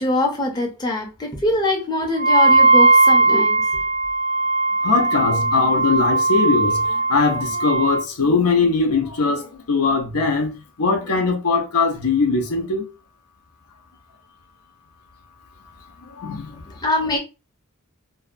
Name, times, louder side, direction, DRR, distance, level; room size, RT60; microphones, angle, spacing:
voice 1, 0.0-3.6 16.8-17.2, left 2 dB, 20° left, 0.6 m, -23 dB
Wind instrument woodwind instrument, 2.2-8.0, right 3 dB, 55° right, 0.5 m, -18 dB
voice 2, 4.8-12.9 16.0-16.6, left 4 dB, 80° left, 0.6 m, -21 dB
2.7 x 2.1 x 2.4 m
head